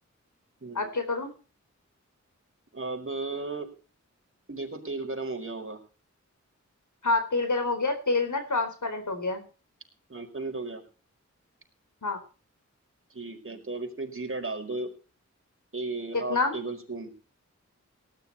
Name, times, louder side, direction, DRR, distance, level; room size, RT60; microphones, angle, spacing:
voice 1, 0.7-1.3 7.0-9.5 12.0-12.2 16.1-16.6, left 3 dB, 80° left, 7 dB, 4.2 m, -27 dB
voice 2, 2.7-3.7 4.5-5.8 10.1-10.8 13.1-14.9 15.7-17.1, right 3 dB, 45° right, 3 dB, 5.0 m, -35 dB
18.5 x 11.5 x 4.2 m, 0.36 s
wide cardioid pair, 55°, 30 cm